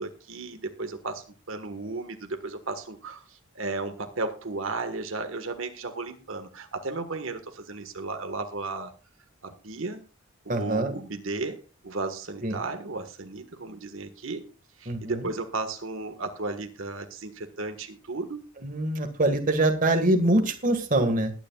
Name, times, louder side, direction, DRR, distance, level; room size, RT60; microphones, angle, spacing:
voice 1, 0.0-8.9 9.4-10.0 10.4-14.5 14.8-18.4, right 3 dB, 70° right, 7 dB, 1.5 m, -34 dB
voice 2, 10.5-10.9 12.4-12.6 14.9-15.2 18.6-21.3, right 1 dB, 40° right, 6 dB, 1.7 m, -24 dB
21.0 x 10.0 x 2.4 m, 0.33 s
head